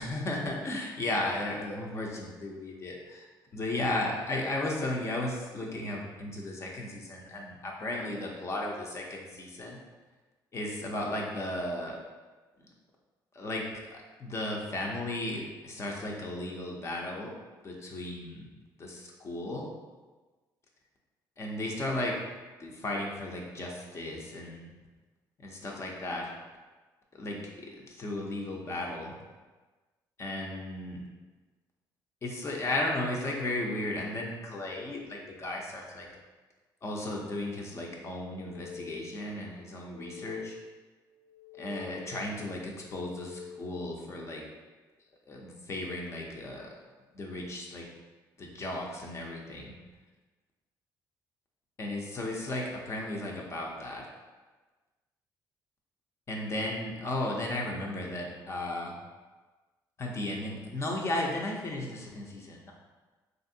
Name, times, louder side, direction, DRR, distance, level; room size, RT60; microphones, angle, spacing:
voice 1, 0.0-3.2 3.5-9.8 10.5-12.0 13.3-17.3 17.6-18.5 18.8-19.7 21.4-22.2 22.6-24.7 25.4-26.3 27.1-29.1 30.2-31.0 32.2-36.1 36.8-40.6 41.5-44.4 45.3-46.7 47.1-47.9 48.4-49.7 51.8-54.1 56.3-59.0 60.0-62.7, left 1 dB, 35° left, -1 dB, 0.6 m, -35 dB
sound 1, 38.2-39.3 39.7-40.8 41.2-42.3 42.7-43.8, left 5 dB, 60° right, 0.4 m, -47 dB
2.9 x 2.5 x 2.7 m, 1.3 s
cardioid pair, 95°, 8 cm